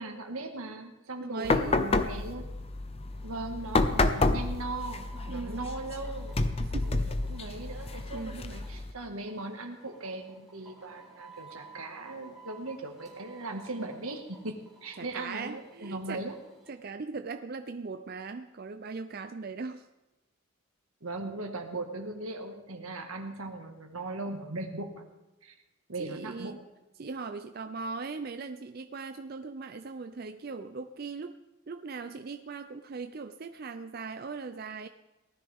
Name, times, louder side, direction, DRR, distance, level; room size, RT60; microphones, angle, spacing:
voice 1, 0.0-2.5 3.2-6.3 6.7-14.6 14.8-16.3 21.0-25.0 25.4-25.5 25.9-26.6, right 2 dB, 85° right, 4 dB, 1.8 m, -39 dB
voice 2, 1.2-1.9 5.3-5.7 6.6-7.1 8.1-8.4 15.0-16.2 16.7-19.9 26.0-26.6 27.0-31.4 31.7-34.9, right 4 dB, 45° right, 8 dB, 0.5 m, -39 dB
knock door, 1.4-8.9, left 2 dB, 30° left, 0.6 m, -30 dB
sound 1, 3.1-16.7, right 3 dB, ahead, 3.9 m, -55 dB
18.5 x 13.0 x 3.6 m, 1.0 s
head